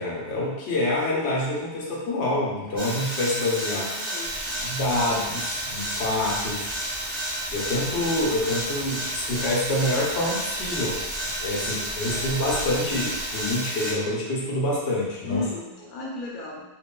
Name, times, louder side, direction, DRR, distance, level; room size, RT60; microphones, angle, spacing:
voice 1, 0.0-3.9 4.6-6.7 7.5-11.0 11.4-15.5, left 1 dB, 85° left, -4 dB, 1.0 m, -26 dB
sound 1, 2.8-13.9, right 1 dB, 30° right, 0.7 m, -31 dB
voice 2, 3.7-4.6 11.5-11.8 12.1-12.2 15.2-16.6, left 2 dB, 55° left, -4 dB, 0.7 m, -36 dB
sound 2, 4.2-13.5, right 1 dB, 70° right, 0.9 m, -41 dB
3.1 x 2.1 x 2.2 m, 1.0 s
omnidirectional pair, 1.1 m